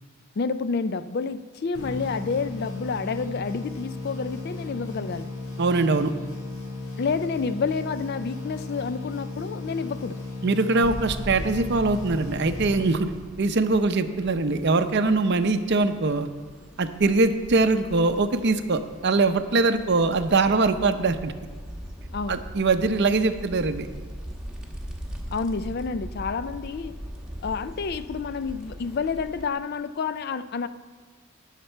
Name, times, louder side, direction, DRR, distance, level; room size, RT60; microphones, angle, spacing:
voice 1, 0.4-5.3 7.0-10.2 22.1-22.4 25.3-26.9 27.4-30.7, left 5 dB, 45° left, 13 dB, 0.4 m, -29 dB
sound 1, 1.7-13.5, left 2 dB, 80° left, 4.4 m, -36 dB
voice 2, 5.6-6.1 10.4-13.1 13.4-16.3 16.8-21.3 22.3-23.9, right 3 dB, 50° right, 9 dB, 0.6 m, -22 dB
sound 2, 10.8-29.5, equal, 5° right, 1.1 m, -40 dB
18.5 x 6.6 x 4.4 m, 1.4 s
head